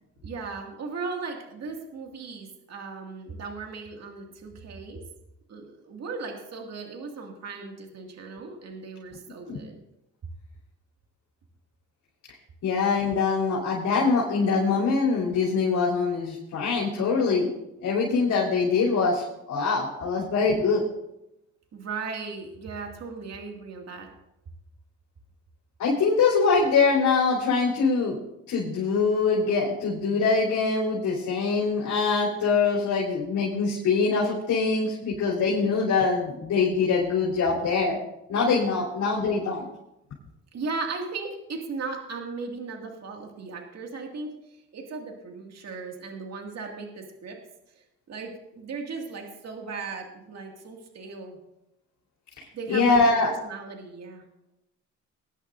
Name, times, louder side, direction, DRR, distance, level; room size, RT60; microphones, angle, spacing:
voice 1, 0.2-5.1 5.5-9.8 21.7-24.1 40.5-47.4 47.7-51.4 52.5-54.2, right 4 dB, 60° right, 1 dB, 2.2 m, -37 dB
voice 2, 12.6-17.5 17.8-20.8 25.8-28.2 28.5-38.0 38.3-39.7 52.7-53.3, left 4 dB, 80° left, -7 dB, 3.6 m, -23 dB
20.0 x 10.5 x 2.6 m, 0.87 s
cardioid pair, 90°, 30 cm